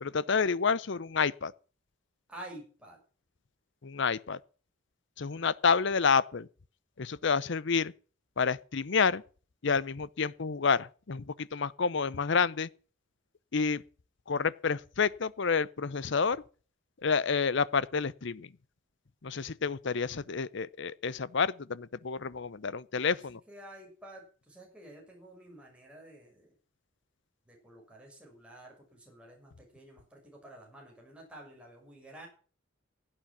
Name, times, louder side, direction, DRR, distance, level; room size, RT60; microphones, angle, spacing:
voice 1, 0.0-1.5 3.8-4.4 5.2-6.5 7.0-7.9 8.4-9.2 9.6-12.7 13.5-13.8 14.3-16.4 17.0-18.5 19.2-23.4, left 5 dB, 60° left, 0.7 m, -29 dB
voice 2, 2.3-3.0 23.1-23.2 23.5-26.5 27.5-32.3, right 1 dB, 5° right, 6.1 m, -50 dB
16.5 x 8.8 x 5.9 m
head